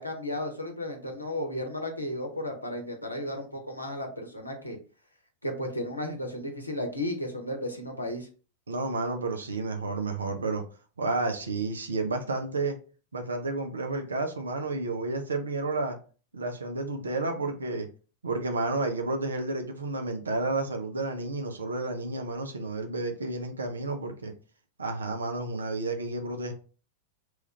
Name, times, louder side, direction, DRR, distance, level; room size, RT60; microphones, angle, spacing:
voice 1, 0.0-4.8 5.4-8.3, left 1 dB, 85° left, 0.7 m, -34 dB
voice 2, 8.7-10.6 11.0-12.8 13.1-16.0 16.3-17.9 18.2-24.3 24.8-26.5, right 3 dB, 75° right, 0.5 m, -31 dB
3.1 x 2.4 x 3.0 m
figure-of-eight pair, 90°, 0 cm